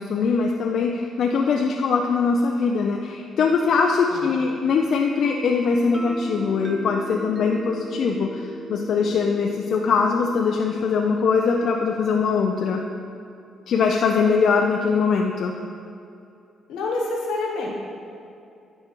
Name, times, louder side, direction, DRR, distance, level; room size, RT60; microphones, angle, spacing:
voice 1, 0.0-12.9 13.7-15.6, left 5 dB, 65° left, 1 dB, 0.4 m, -22 dB
voice 2, 4.1-4.4 16.7-17.7, left 2 dB, 85° left, -2 dB, 1.2 m, -27 dB
sound 1, 5.2-12.9, right 1 dB, 30° right, 0.5 m, -38 dB
9.7 x 4.8 x 3.0 m, 2.6 s
cardioid pair, 90°, 0 cm